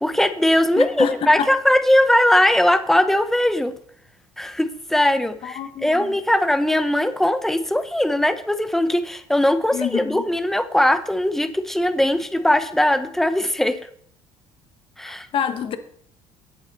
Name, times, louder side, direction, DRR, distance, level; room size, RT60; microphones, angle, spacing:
voice 1, 0.0-3.7 4.4-13.8 15.0-15.3, left 1 dB, 5° left, 12 dB, 0.8 m, -20 dB
voice 2, 0.8-1.5 5.4-6.2 9.7-10.2 15.1-15.8, left 8 dB, 55° left, 10 dB, 1.1 m, -27 dB
10.5 x 8.5 x 4.1 m, 0.65 s
cardioid pair, 105°, 11 cm